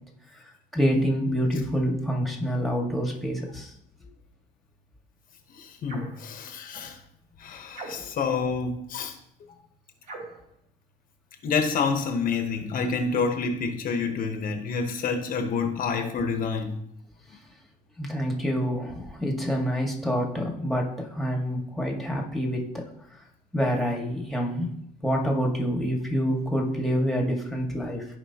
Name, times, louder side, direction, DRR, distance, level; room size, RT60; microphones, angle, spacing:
voice 1, 0.7-3.7 8.0-8.1 18.0-22.9 23.5-24.8 25.0-28.1, equal, ahead, 1.8 m, -27 dB
voice 2, 5.5-7.0 7.4-9.1 11.4-16.8, left 5 dB, 55° left, 1.0 m, -28 dB
sound 1, 5.8-6.2 7.7-8.3 10.0-10.5, right 3 dB, 60° right, 3.1 m, -41 dB
14.5 x 5.0 x 2.9 m
cardioid pair, 110°, 17 cm